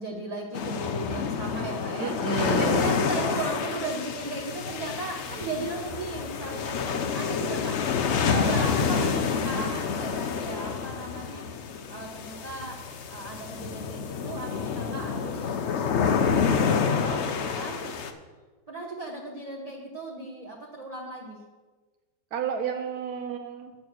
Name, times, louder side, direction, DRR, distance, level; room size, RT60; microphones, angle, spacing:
voice 1, 0.0-2.2 2.5-18.0 18.7-21.4, right 2 dB, 30° right, -1 dB, 0.8 m, -37 dB
sound 1, 0.5-18.1, left 6 dB, 65° left, 0.6 m, -28 dB
voice 2, 2.0-2.9 8.3-9.2 22.3-23.7, right 7 dB, 65° right, 4 dB, 1.0 m, -31 dB
8.6 x 7.0 x 6.2 m, 1.3 s
omnidirectional pair, 2.0 m